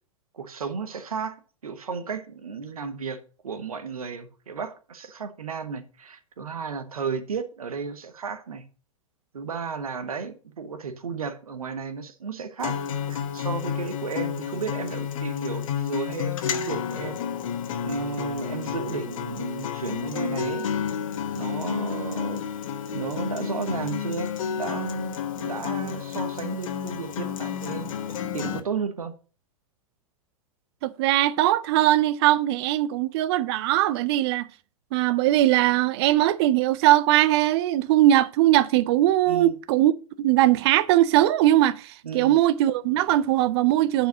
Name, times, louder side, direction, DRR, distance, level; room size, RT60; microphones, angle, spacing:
voice 1, 0.3-8.6 9.3-12.8 13.1-17.2 17.8-20.7 21.3-22.4 22.9-27.9 28.3-29.1 39.3-39.5 42.0-42.3, right 5 dB, 75° right, 1.1 m, -33 dB
Acoustic guitar, 12.6-28.6, left 8 dB, 65° left, 1.2 m, -31 dB
voice 2, 30.8-34.5 34.9-39.9 40.2-44.1, right 14 dB, 45° right, 0.5 m, -20 dB
9.2 x 4.9 x 4.9 m
figure-of-eight pair, 105°, 18 cm